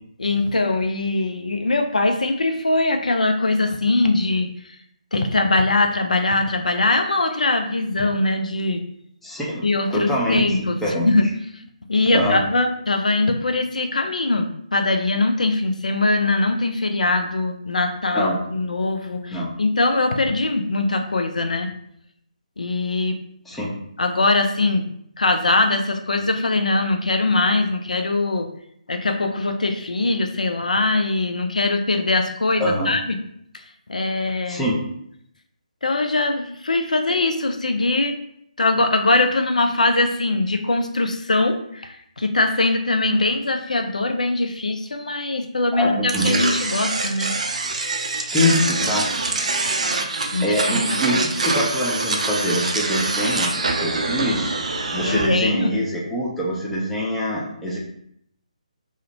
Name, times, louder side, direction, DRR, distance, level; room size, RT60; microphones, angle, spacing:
voice 1, 0.2-4.8 5.1-8.8 9.6-10.8 11.0-11.3 11.9-21.7 22.6-23.2 24.0-24.8 25.2-28.5 28.9-33.2 33.9-34.7 35.8-38.1 38.6-47.3 50.3-50.8 51.1-51.3 55.0-55.8, left 2 dB, 75° left, 5 dB, 0.4 m, -21 dB
voice 2, 9.2-11.1 12.1-12.4 18.1-18.4 19.3-19.5 23.5-23.7 32.6-32.9 34.5-34.8 45.7-46.3 48.2-49.3 50.4-54.6 54.9-57.8, left 1 dB, 5° left, -5 dB, 0.4 m, -24 dB
sound 1, 46.1-55.3, right 3 dB, 60° right, 0.4 m, -24 dB
2.4 x 2.1 x 2.8 m, 0.70 s
figure-of-eight pair, 145°, 4 cm